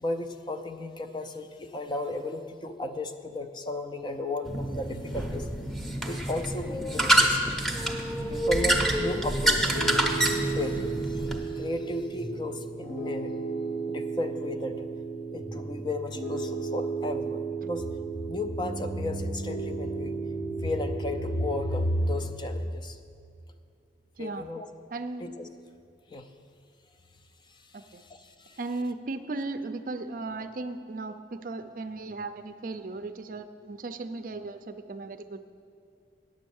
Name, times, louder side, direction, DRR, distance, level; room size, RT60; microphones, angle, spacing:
voice 1, 0.0-5.5 6.0-7.5 8.3-13.3 13.7-14.9 15.3-17.9 18.3-20.2 20.6-23.0 24.2-24.7 25.2-25.5 26.1-26.3 27.5-28.6, left 1 dB, 25° left, 7 dB, 0.4 m, -34 dB
sound 1, 4.4-11.4, right 1 dB, ahead, 0.7 m, -27 dB
Piano, 8.8-21.9, right 4 dB, 85° left, 3.0 m, -34 dB
voice 2, 24.9-25.2 27.7-28.0 28.6-35.5, right 3 dB, 50° right, 9 dB, 0.5 m, -36 dB
9.2 x 7.3 x 7.1 m, 2.5 s
head